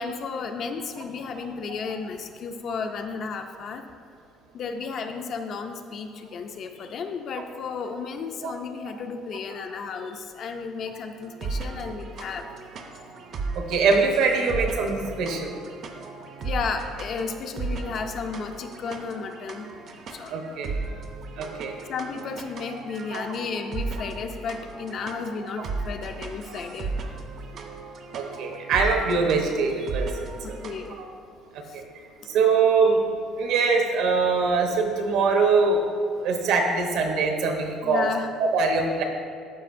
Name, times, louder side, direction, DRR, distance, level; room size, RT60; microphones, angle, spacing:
voice 1, 0.0-3.8 4.5-12.5 16.4-19.7 19.9-20.3 21.9-26.9 30.4-31.0 31.7-31.8 37.8-38.3, left 5 dB, 40° left, 6 dB, 0.4 m, -33 dB
sound 1, 11.2-30.9, right 3 dB, 40° right, 0.6 m, -35 dB
voice 2, 13.5-15.5 20.3-20.7 21.4-21.8 23.1-23.2 25.0-25.1 26.5-26.6 28.1-30.6 31.5-31.8 32.3-33.0 33.4-35.8 36.2-38.0 38.4-39.0, right 4 dB, 65° right, 3 dB, 0.9 m, -23 dB
12.5 x 5.1 x 2.6 m, 2.4 s
cardioid pair, 170°, 0 cm